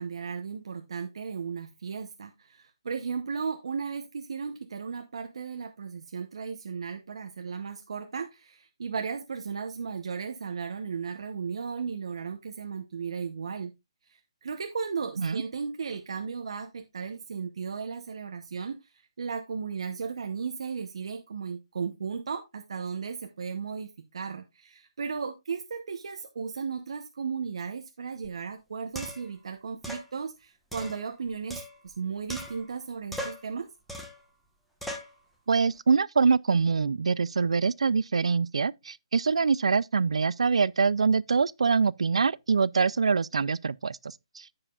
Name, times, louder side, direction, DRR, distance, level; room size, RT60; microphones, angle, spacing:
voice 1, 0.0-13.7 14.1-18.9 19.2-33.7, right 5 dB, 65° right, 0.9 m, -35 dB
sound 1, 28.2-28.3 29.0-29.3 29.8-30.1 30.7-32.0 32.3-32.8 33.1-33.5 33.9-34.3 34.8-35.2, equal, ahead, 1.2 m, -39 dB
voice 2, 35.5-44.0 44.4-44.5, right 5 dB, 85° right, 0.4 m, -24 dB
14.0 x 4.9 x 2.4 m
hypercardioid pair, 160°, 3 cm